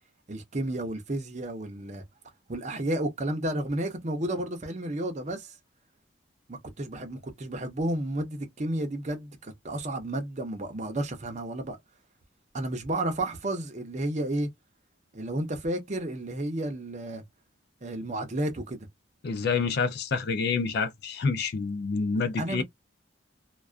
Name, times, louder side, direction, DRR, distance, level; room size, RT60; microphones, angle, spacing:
voice 1, 0.3-2.0 2.5-5.5 6.5-11.8 12.5-14.5 15.1-17.2 17.8-18.9 22.4-22.6, right 1 dB, 35° right, 0.7 m, -32 dB
voice 2, 19.2-22.6, left 5 dB, 55° left, 0.4 m, -28 dB
2.3 x 2.2 x 2.4 m
head